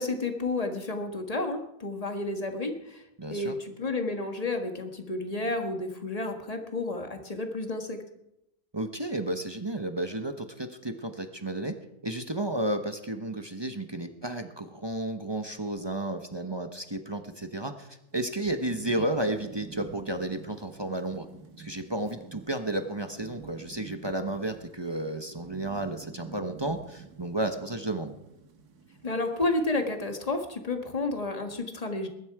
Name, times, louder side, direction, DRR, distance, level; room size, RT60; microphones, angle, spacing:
voice 1, 0.0-3.0 3.3-8.0 29.0-32.1, left 2 dB, 25° left, 5 dB, 1.6 m, -31 dB
voice 2, 3.2-3.6 8.7-11.8 12.0-21.3 21.6-28.1, right 1 dB, 20° right, 7 dB, 0.8 m, -32 dB
Thunderstorm / Rain, 18.1-30.4, right 5 dB, 75° right, 1.9 m, -49 dB
21.0 x 11.5 x 4.8 m, 0.85 s
omnidirectional pair, 1.7 m